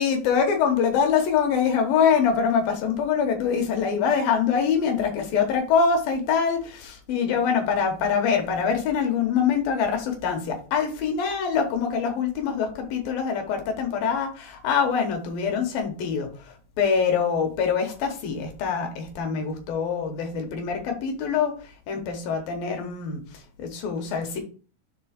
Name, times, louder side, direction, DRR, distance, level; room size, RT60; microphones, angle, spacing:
voice 1, 0.0-24.4, left 6 dB, 70° left, 4 dB, 2.3 m, -24 dB
7.0 x 3.7 x 5.0 m, 0.39 s
omnidirectional pair, 5.3 m